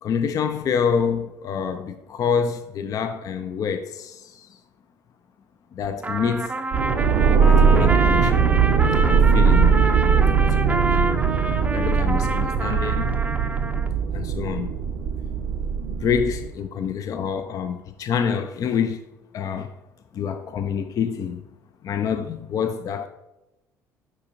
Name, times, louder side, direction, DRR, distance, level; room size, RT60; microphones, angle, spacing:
voice 1, 0.0-4.5 5.7-6.6 7.3-8.6 9.0-9.9 10.2-11.1 11.7-13.2 14.1-14.7 16.0-19.0 19.3-19.7 20.1-21.4 21.8-23.1, left 7 dB, 40° left, 0.5 m, -27 dB
Trumpet, 6.0-13.9, right 2 dB, 15° right, 0.6 m, -28 dB
sound 1, 6.7-16.5, right 6 dB, 55° right, 0.6 m, -20 dB
9.7 x 4.3 x 2.7 m
figure-of-eight pair, 50°, 9 cm